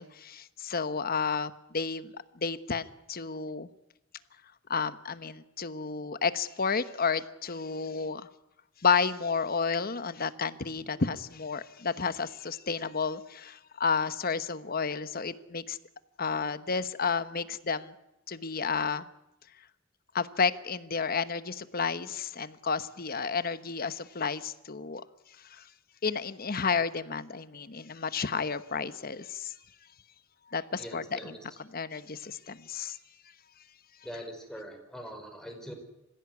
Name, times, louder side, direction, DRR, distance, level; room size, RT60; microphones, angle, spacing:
voice 1, 0.0-3.7 4.7-8.2 8.8-15.8 16.2-17.9 18.3-19.1 20.1-25.0 25.4-25.6 26.0-29.5 30.5-31.4 31.7-33.0, left 5 dB, 50° left, 12 dB, 1.1 m, -31 dB
voice 2, 30.8-31.4 34.0-35.7, equal, 5° left, 3 dB, 5.2 m, -42 dB
25.5 x 16.0 x 9.6 m, 0.92 s
head